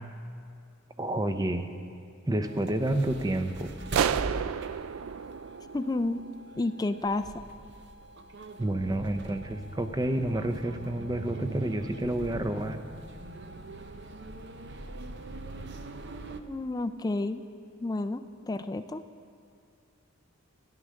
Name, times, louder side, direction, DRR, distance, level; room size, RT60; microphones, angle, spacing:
voice 1, 1.0-1.7 2.3-3.7 8.6-12.8, right 1 dB, 20° right, 8 dB, 0.6 m, -29 dB
sound 1, 2.4-16.4, right 2 dB, 55° right, 0.7 m, -42 dB
sound 2, 3.9-6.5, right 8 dB, 85° right, 0.3 m, -31 dB
voice 2, 5.7-6.2 6.6-7.3 16.5-17.4 17.8-19.0, left 2 dB, 20° left, 10 dB, 0.4 m, -30 dB
13.5 x 11.0 x 6.4 m, 2.3 s
head